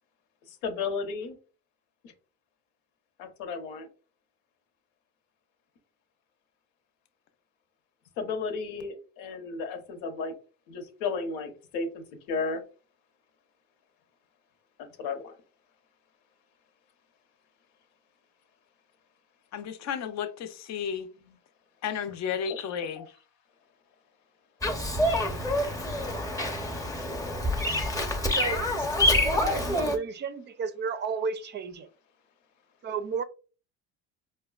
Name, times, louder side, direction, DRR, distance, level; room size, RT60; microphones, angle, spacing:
voice 1, 0.5-1.3 3.2-3.9 8.2-10.3 10.7-12.6 15.0-15.3 21.3-21.4 22.4-23.1, left 4 dB, 80° left, 1.0 m, -34 dB
voice 2, 19.5-21.1 21.8-23.0, left 7 dB, 50° left, 0.6 m, -33 dB
Bird vocalization bird call bird song, 24.6-30.0, left 1 dB, 10° left, 0.7 m, -27 dB
voice 3, 28.3-31.9 32.8-33.2, right 5 dB, 30° right, 0.4 m, -33 dB
4.7 x 2.2 x 2.3 m
supercardioid pair, 95°, 34 cm